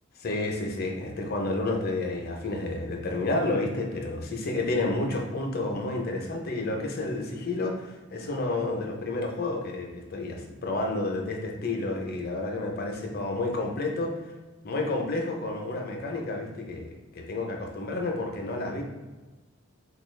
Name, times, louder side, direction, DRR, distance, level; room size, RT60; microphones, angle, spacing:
voice 1, 0.2-14.2 14.6-18.8, left 2 dB, 45° left, 1 dB, 0.5 m, -30 dB
4.1 x 2.3 x 3.1 m, 1.2 s
head